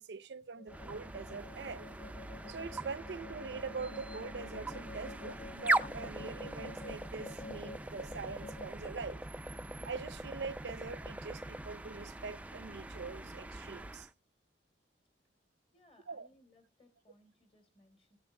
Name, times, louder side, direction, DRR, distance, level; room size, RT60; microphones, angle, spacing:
voice 1, 0.0-1.9 2.5-9.2 9.8-14.1 16.1-16.3, right 4 dB, 70° right, 0.6 m, -43 dB
sound 1, 0.6-8.7, left 3 dB, 70° left, 4.0 m, -50 dB
sound 2, 0.7-14.1, right 2 dB, 10° right, 0.4 m, -40 dB
voice 2, 15.7-18.2, left 1 dB, 35° left, 3.7 m, -66 dB
15.5 x 8.8 x 3.3 m
head